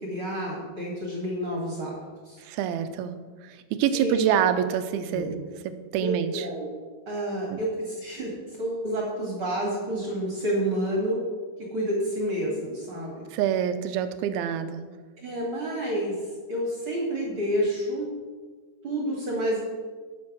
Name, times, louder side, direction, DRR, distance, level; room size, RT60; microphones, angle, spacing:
voice 1, 0.0-1.9 2.3-2.4 3.9-4.4 5.1-5.4 6.0-6.7 7.1-8.3 8.6-11.2 11.7-13.1 15.2-16.1 16.5-18.1 18.8-19.6, right 1 dB, 45° right, -2 dB, 2.1 m, -29 dB
voice 2, 2.5-3.2 3.7-5.3 5.9-6.5 7.5-7.6 13.3-14.9, right 9 dB, 85° right, 10 dB, 2.5 m, -26 dB
10.5 x 7.1 x 6.0 m, 1.5 s
omnidirectional pair, 4.4 m